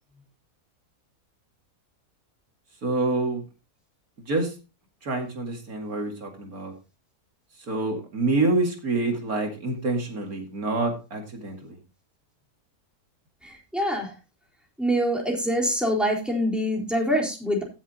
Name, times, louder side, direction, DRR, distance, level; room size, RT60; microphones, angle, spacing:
voice 1, 2.8-3.4 4.3-4.5 5.0-6.7 7.7-11.8, right 2 dB, 65° right, 3 dB, 2.7 m, -27 dB
voice 2, 13.4-14.1 14.8-17.6, equal, ahead, -1 dB, 3.8 m, -25 dB
16.5 x 7.3 x 2.9 m, 0.29 s
omnidirectional pair, 1.7 m